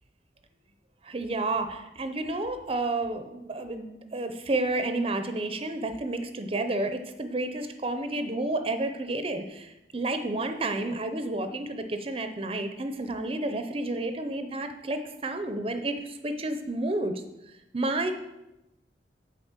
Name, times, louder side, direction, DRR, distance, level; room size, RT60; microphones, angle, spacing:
voice 1, 1.0-17.1 17.7-18.1, right 2 dB, 30° right, 8 dB, 0.6 m, -30 dB
8.0 x 4.8 x 7.3 m, 0.94 s
head